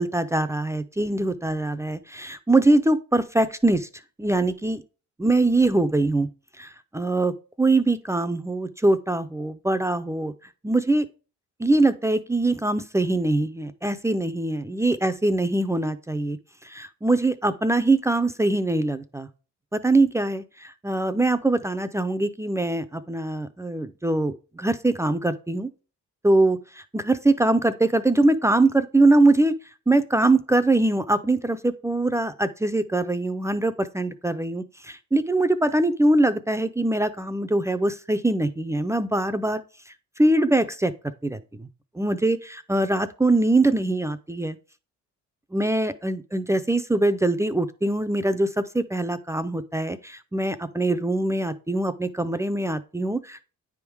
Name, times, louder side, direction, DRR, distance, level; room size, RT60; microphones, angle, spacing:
voice 1, 0.0-3.9 4.2-4.8 5.2-6.3 6.6-10.3 10.6-11.1 11.6-16.4 16.6-19.3 19.7-25.7 26.2-29.5 29.9-39.6 40.2-41.7 42.0-44.6 45.5-53.5, right 2 dB, 10° right, 10 dB, 0.5 m, -23 dB
9.3 x 3.6 x 4.7 m, 0.35 s
cardioid pair, 90°, 30 cm